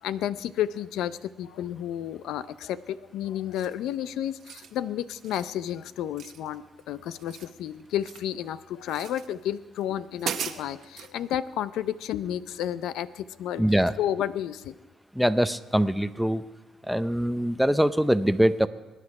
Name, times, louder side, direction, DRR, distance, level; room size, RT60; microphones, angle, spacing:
voice 1, 0.0-14.7, left 11 dB, 85° left, 15 dB, 0.5 m, -31 dB
sound 1, 3.5-3.9 4.3-4.7 5.1-5.5 6.2-6.8 7.1-8.3 8.9-9.3 9.8-9.9 10.2-11.1, right 8 dB, 70° right, 1.0 m, -37 dB
voice 2, 13.6-13.9 15.1-16.4 16.9-18.7, equal, ahead, 11 dB, 0.6 m, -23 dB
23.0 x 10.0 x 4.8 m, 1.2 s
cardioid pair, 90°, 0 cm